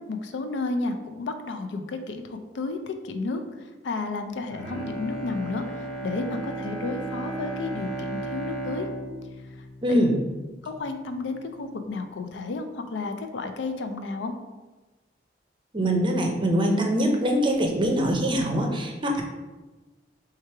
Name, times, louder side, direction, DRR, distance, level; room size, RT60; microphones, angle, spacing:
voice 1, 0.1-3.4 3.8-8.9 9.9-10.0 10.6-14.3, left 3 dB, 75° left, 7 dB, 0.4 m, -32 dB
Bowed string instrument, 4.4-10.7 11.1-11.2, right 2 dB, ahead, 0.9 m, -35 dB
voice 2, 9.8-10.2 15.7-19.2, equal, 25° right, 2 dB, 0.6 m, -23 dB
3.4 x 3.2 x 4.5 m, 1.2 s
head